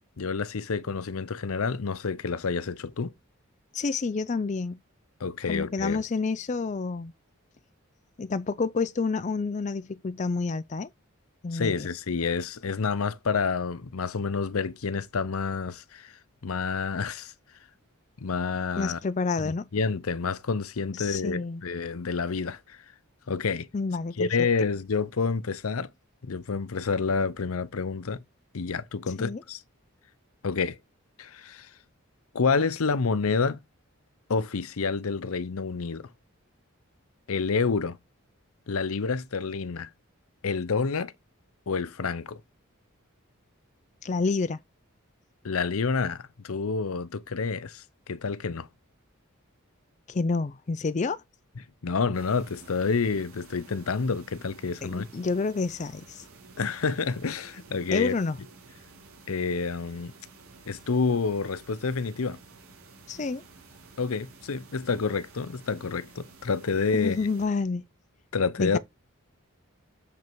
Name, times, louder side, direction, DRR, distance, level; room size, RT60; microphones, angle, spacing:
voice 1, 0.2-3.1 5.2-6.0 11.5-17.3 18.2-19.0 19.4-22.8 23.3-23.7 24.2-25.9 26.2-28.2 28.5-29.6 30.4-30.8 31.2-31.7 32.3-33.6 34.3-36.1 37.3-38.0 38.7-39.9 40.4-41.1 41.7-42.4 45.4-48.7 51.8-55.1 56.6-58.1 59.3-60.1 60.7-62.4 64.0-67.2 68.3-68.8, left 4 dB, 80° left, 0.7 m, -28 dB
voice 2, 3.7-4.8 5.5-7.1 8.2-10.9 11.4-11.9 18.8-19.7 21.0-21.6 23.7-24.3 29.2-29.4 44.0-44.6 50.1-51.2 54.8-56.2 57.9-58.4 63.1-63.4 66.9-67.8 68.6-68.8, left 4 dB, 35° left, 0.4 m, -29 dB
sound 1, 52.1-67.5, right 3 dB, 80° right, 3.4 m, -52 dB
6.9 x 5.3 x 4.6 m
head